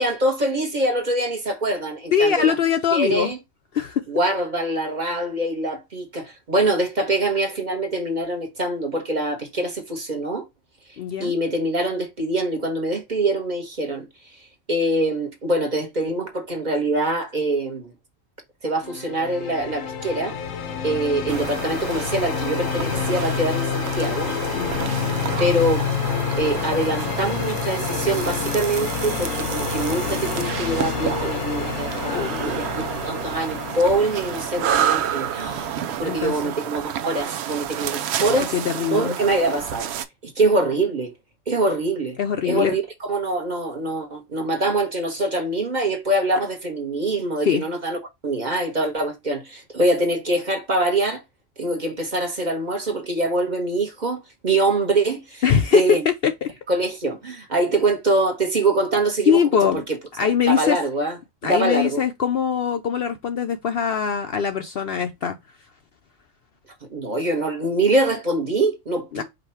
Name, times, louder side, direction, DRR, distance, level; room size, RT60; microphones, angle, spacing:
voice 1, 0.0-2.5 2.9-3.4 4.1-10.5 11.2-14.1 14.7-17.9 18.6-20.4 20.8-24.3 25.4-25.9 26.4-38.5 38.9-39.9 40.2-41.1 41.5-42.2 42.4-48.0 48.2-51.2 51.6-55.4 55.7-56.0 56.7-59.4 59.7-59.8 60.2-61.2 61.4-62.0 66.9-69.2, right 2 dB, 40° right, 1.1 m, -24 dB
voice 2, 2.1-3.3 3.7-4.0 11.0-11.3 24.5-25.0 32.1-32.8 36.0-36.5 38.2-39.2 42.2-42.8 47.5-47.6 55.4-56.5 59.3-59.8 60.2-60.8 61.4-65.4 69.1-69.2, left 7 dB, 60° left, 0.7 m, -22 dB
sound 1, 18.8-36.6, left 7 dB, 90° left, 1.2 m, -28 dB
sound 2, 21.3-40.1, right 10 dB, 65° right, 0.7 m, -30 dB
5.1 x 2.3 x 4.3 m
omnidirectional pair, 1.3 m